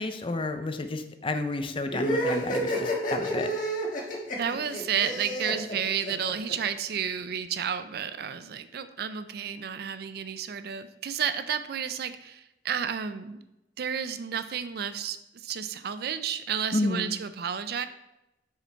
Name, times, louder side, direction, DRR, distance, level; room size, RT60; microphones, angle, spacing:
voice 1, 0.0-3.5 16.7-17.1, left 2 dB, 30° left, 8 dB, 0.5 m, -30 dB
sound 1, 1.9-6.5, equal, 50° left, 1.4 m, -30 dB
voice 2, 4.4-13.4 13.8-17.9, right 7 dB, 60° right, 12 dB, 0.4 m, -31 dB
6.6 x 5.0 x 4.5 m, 0.92 s
head